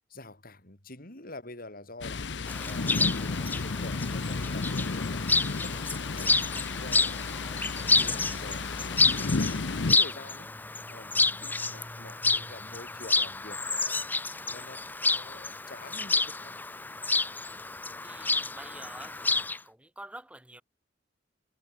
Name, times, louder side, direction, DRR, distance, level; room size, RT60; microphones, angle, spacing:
voice 1, 0.1-2.4 2.6-6.5 6.8-10.5 10.9-14.0 14.4-16.5, left 2 dB, 50° left, 5.2 m, -47 dB
Thunder, 2.0-10.0, left 3 dB, 65° left, 0.8 m, -32 dB
Chirp tweet, 2.5-19.6, left 3 dB, 10° left, 0.4 m, -29 dB
sound 1, 9.5-14.3, equal, 25° right, 4.1 m, -52 dB
voice 2, 18.0-20.6, right 1 dB, 5° right, 1.2 m, -47 dB
head